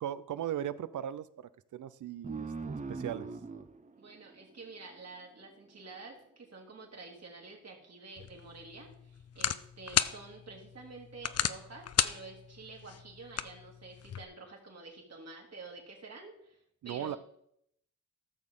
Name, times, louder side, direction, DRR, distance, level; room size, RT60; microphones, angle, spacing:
voice 1, 0.0-3.3 16.8-17.2, right 10 dB, 70° right, 0.6 m, -38 dB
sound 1, 2.2-5.4, right 4 dB, 25° right, 0.6 m, -42 dB
voice 2, 3.9-17.2, right 3 dB, 55° right, 2.8 m, -49 dB
sound 2, 8.2-14.2, left 9 dB, 50° left, 0.5 m, -35 dB
14.5 x 6.5 x 3.7 m
cardioid pair, 70°, 31 cm